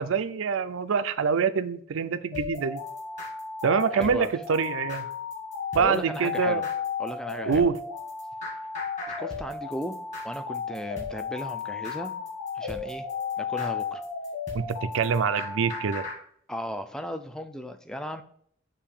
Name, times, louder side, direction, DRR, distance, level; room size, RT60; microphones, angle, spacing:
voice 1, 0.0-2.8 3.6-5.1 5.7-6.7 7.5-7.8 14.5-16.1, right 6 dB, 80° right, 12 dB, 0.4 m, -25 dB
sound 1, 2.3-16.2, left 5 dB, 35° left, 1.7 m, -34 dB
voice 2, 3.9-4.3 5.8-6.6 7.0-7.6 9.2-10.0 10.2-12.2 12.5-13.1 13.4-14.0 16.5-18.2, equal, 5° left, 8 dB, 0.3 m, -36 dB
6.8 x 2.7 x 5.4 m, 0.62 s
head